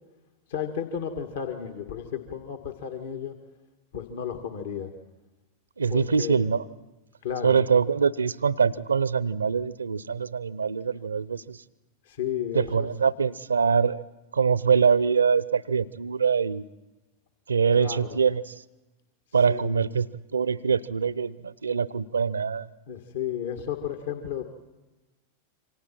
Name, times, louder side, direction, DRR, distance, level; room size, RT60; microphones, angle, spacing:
voice 1, 0.5-3.4 3.9-4.9 5.9-6.4 7.2-7.6 12.1-12.9 17.8-18.1 19.5-19.7 22.9-24.4, left 8 dB, 60° left, 6 dB, 2.0 m, -33 dB
voice 2, 5.8-6.7 7.4-11.6 12.5-14.0 14.3-16.6 17.5-18.5 19.3-20.1 20.3-22.7, right 6 dB, 75° right, 21 dB, 0.7 m, -24 dB
28.0 x 25.5 x 4.5 m, 1.1 s
figure-of-eight pair, 90°, 0 cm